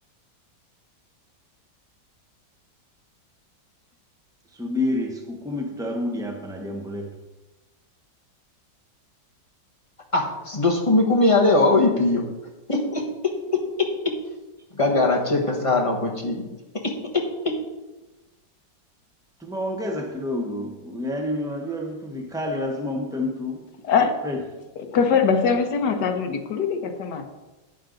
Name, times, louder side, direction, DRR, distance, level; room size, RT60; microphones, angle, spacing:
voice 1, 4.5-7.1 19.4-23.7 24.2-24.7, left 1 dB, 5° right, 1 dB, 0.3 m, -29 dB
voice 2, 10.1-12.2 12.7-13.0 14.8-16.4, left 2 dB, 20° left, 0 dB, 1.2 m, -20 dB
voice 3, 24.9-27.3, left 6 dB, 65° left, 6 dB, 1.5 m, -22 dB
11.0 x 8.9 x 3.9 m, 1.1 s
omnidirectional pair, 2.0 m